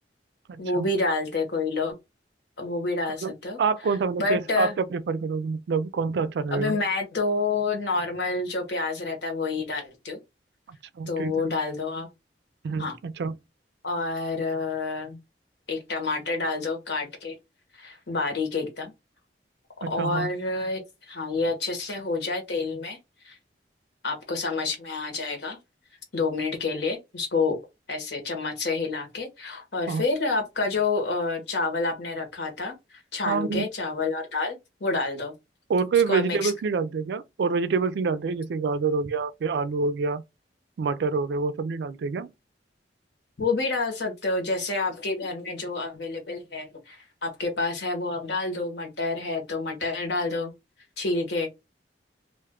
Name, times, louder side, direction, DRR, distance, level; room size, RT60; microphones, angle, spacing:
voice 1, 0.6-1.9 2.6-3.6 4.2-4.7 6.5-10.2 11.1-12.1 12.8-12.9 13.8-15.2 15.7-17.4 17.7-18.9 19.8-23.0 23.2-23.3 24.0-25.6 26.1-27.6 27.9-35.3 36.1-36.5 43.4-50.5 51.0-51.5, left 3 dB, 70° left, 1.1 m, -28 dB
voice 2, 3.6-6.8 11.0-11.3 12.6-13.3 19.8-20.3 29.9-30.0 33.2-33.7 35.7-40.2 40.8-42.3, right 5 dB, 65° right, 0.3 m, -26 dB
2.5 x 2.3 x 3.5 m
head